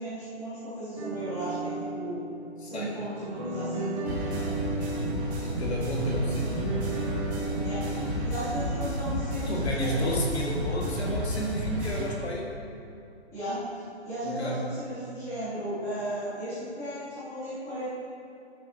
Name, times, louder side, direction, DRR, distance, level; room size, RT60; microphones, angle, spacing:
voice 1, 0.0-2.2 2.6-4.3 7.6-7.9 8.2-10.2 13.3-13.6 14.0-17.9, equal, 10° left, -14 dB, 2.9 m, -35 dB
sound 1, 0.9-8.6, right 2 dB, 25° right, 1.5 m, -35 dB
voice 2, 2.6-3.0 5.4-7.2 7.5-7.6 9.4-12.6 14.2-14.6, equal, 70° left, -2 dB, 2.2 m, -32 dB
sound 2, 4.1-12.1, equal, 10° right, 1.7 m, -32 dB
13.5 x 11.5 x 3.0 m, 2.6 s
hypercardioid pair, 180°, 33 cm